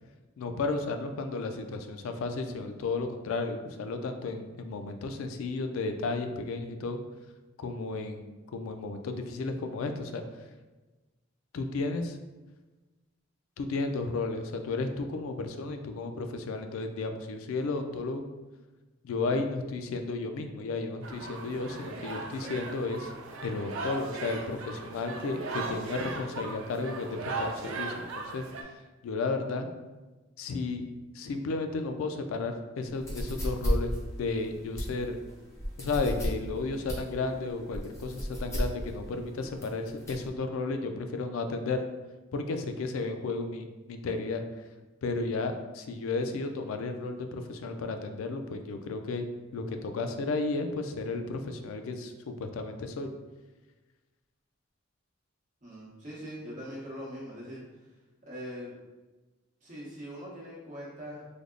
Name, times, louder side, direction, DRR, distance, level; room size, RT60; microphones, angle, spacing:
voice 1, 0.4-7.0 7.6-10.2 11.5-12.2 13.6-18.3 19.0-23.1 23.4-28.4 29.0-29.7 30.4-30.8 31.1-35.2 35.8-41.8 42.3-44.4 45.0-49.2 49.5-53.1, left 3 dB, 85° left, 6 dB, 0.3 m, -33 dB
sound 1, 21.0-28.6, right 3 dB, 85° right, 0.4 m, -38 dB
voice 2, 22.1-22.5 55.6-57.6 58.2-58.7 59.6-61.3, equal, 40° right, -6 dB, 1.0 m, -42 dB
sound 2, 33.0-40.3, equal, 15° left, 0.6 m, -34 dB
3.4 x 2.0 x 3.7 m, 1.2 s
head